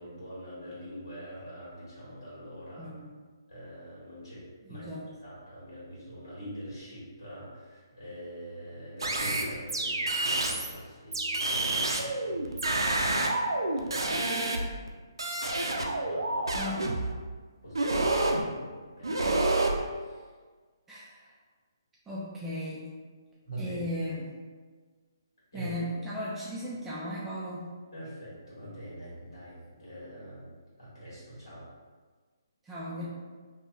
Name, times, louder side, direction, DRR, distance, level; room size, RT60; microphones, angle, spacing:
voice 1, 0.0-2.9 3.5-4.4 4.7-4.8 5.2-13.2 13.7-14.5 15.6-16.7 17.6-19.6 19.9-20.3 23.4-23.8 25.5-25.8 27.9-30.5 30.8-31.6, equal, 85° left, -9 dB, 1.4 m, -44 dB
voice 2, 2.8-3.1 4.7-5.0 16.5-16.9 20.9-21.3 22.1-22.9 23.6-24.3 25.5-27.7 32.6-33.1, left 1 dB, 10° right, -8 dB, 0.4 m, -36 dB
sound 1, 9.0-10.7 11.1-14.9 15.2-17.1 17.7-18.4 19.0-19.8, right 2 dB, 90° right, 0.4 m, -28 dB
2.9 x 2.7 x 2.3 m, 1.5 s
hypercardioid pair, 150°, 2 cm